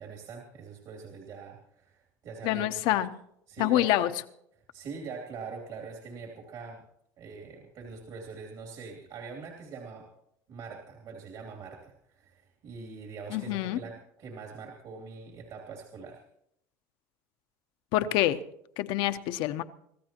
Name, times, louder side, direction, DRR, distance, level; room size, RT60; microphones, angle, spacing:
voice 1, 0.0-2.7 3.5-3.9 4.5-6.8 7.2-10.1 10.5-16.2, right 5 dB, 55° right, 2.8 m, -43 dB
voice 2, 2.4-3.1 3.6-4.1 13.3-13.8 17.9-18.4 18.8-19.6, left 14 dB, 65° left, 0.9 m, -26 dB
25.5 x 14.0 x 3.0 m
supercardioid pair, 110°, 9 cm